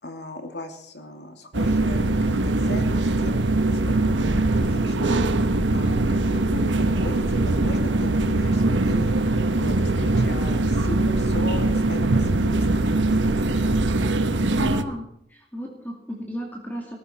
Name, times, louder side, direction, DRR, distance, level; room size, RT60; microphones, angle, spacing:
voice 1, 0.0-3.3 3.7-5.2 5.7-13.6, left 1 dB, 65° left, 5 dB, 2.5 m, -37 dB
sound 1, 1.5-14.8, right 2 dB, 85° right, 1.1 m, -22 dB
voice 2, 14.4-15.0 15.3-17.0, equal, 10° left, 0 dB, 2.4 m, -34 dB
18.0 x 14.5 x 4.4 m, 0.72 s
head